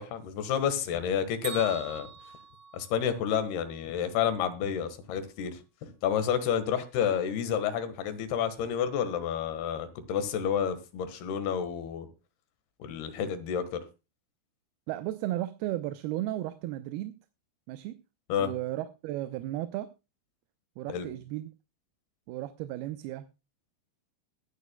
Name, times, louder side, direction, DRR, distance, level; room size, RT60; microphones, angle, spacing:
voice 1, 0.0-2.1 2.7-12.1 12.8-13.8 18.3-18.5 20.9-21.1, left 8 dB, 80° left, 3.5 m, -30 dB
Bell, 1.4-3.5, right 6 dB, 40° right, 5.1 m, -43 dB
voice 2, 14.9-17.2 17.7-18.0 18.4-19.9 20.8-21.5 22.3-23.3, right 15 dB, 80° right, 2.7 m, -34 dB
22.0 x 10.0 x 2.2 m
omnidirectional pair, 4.5 m